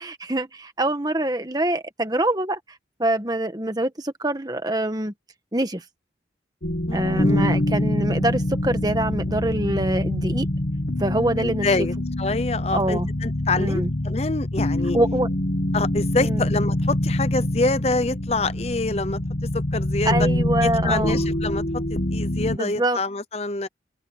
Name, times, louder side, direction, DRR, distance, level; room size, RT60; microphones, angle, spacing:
voice 1, 0.0-2.6 3.0-5.1 5.5-5.8 6.9-10.5 11.0-11.9 12.7-13.1 13.6-13.9 14.9-15.3 16.2-16.4 20.0-21.2 22.5-23.0, right 1 dB, 20° right, 1.6 m, -25 dB
sound 1, 6.6-22.6, left 1 dB, 55° left, 1.5 m, -25 dB
voice 2, 6.9-7.5 11.4-15.0 15.7-19.2 19.5-20.1 20.6-21.6 21.9-23.7, left 3 dB, 35° left, 0.7 m, -26 dB
head